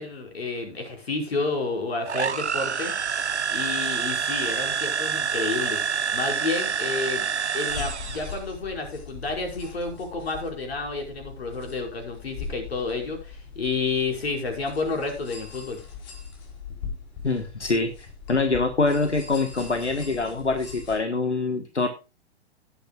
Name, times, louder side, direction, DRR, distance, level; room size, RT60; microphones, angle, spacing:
voice 1, 0.0-2.9 3.5-5.8 6.1-7.3 7.5-15.8, left 3 dB, 65° left, 3 dB, 5.3 m, -30 dB
sound 1, 2.1-8.4, right 6 dB, 80° right, 0.7 m, -27 dB
sound 2, 7.7-21.0, left 5 dB, 40° left, 5.3 m, -40 dB
voice 2, 17.2-21.9, left 3 dB, 85° left, 9 dB, 1.5 m, -25 dB
18.0 x 8.6 x 2.4 m, 0.30 s
figure-of-eight pair, 110°, 33 cm